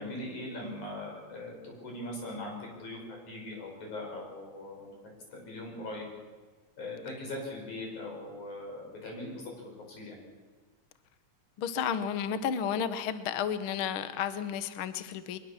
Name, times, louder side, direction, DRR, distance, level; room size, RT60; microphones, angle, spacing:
voice 1, 0.0-4.9 5.3-6.1 6.8-10.2, left 1 dB, 85° left, 0 dB, 7.6 m, -40 dB
voice 2, 11.6-15.4, left 8 dB, 60° left, 11 dB, 1.6 m, -32 dB
22.5 x 21.0 x 7.4 m, 1.4 s
omnidirectional pair, 3.4 m